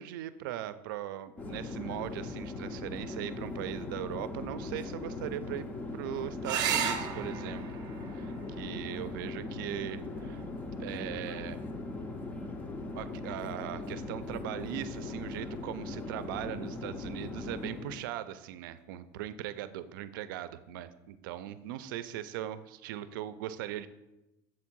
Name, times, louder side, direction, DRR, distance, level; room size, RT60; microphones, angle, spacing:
voice 1, 0.0-5.6 5.9-7.6 8.1-10.4 10.8-11.6 12.9-23.9, right 12 dB, 85° right, 13 dB, 0.4 m, -39 dB
Conversation / Chatter / Fixed-wing aircraft airplane, 1.4-18.0, left 2 dB, 15° left, 0.4 m, -39 dB
sound 1, 6.4-11.5 13.4-14.0 17.4-17.6 17.9-18.0, right 8 dB, 35° right, 0.6 m, -37 dB
7.6 x 3.6 x 6.0 m, 0.99 s
cardioid pair, 180°, 11 cm